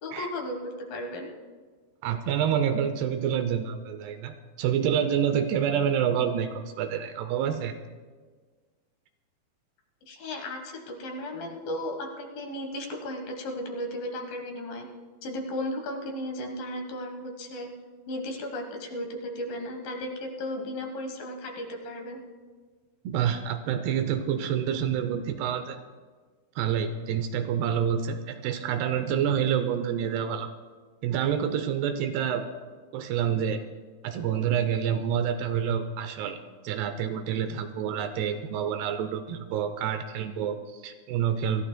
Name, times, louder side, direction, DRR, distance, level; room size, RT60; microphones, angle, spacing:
voice 1, 0.0-1.3 10.1-14.9 15.2-17.7 18.1-22.2, left 1 dB, 65° left, 2 dB, 2.8 m, -35 dB
voice 2, 2.0-7.8 23.0-25.8 26.6-30.5 31.0-32.5 32.9-33.6 34.0-41.6, right 8 dB, 80° right, 9 dB, 2.6 m, -28 dB
27.0 x 14.5 x 2.2 m, 1.5 s
omnidirectional pair, 4.9 m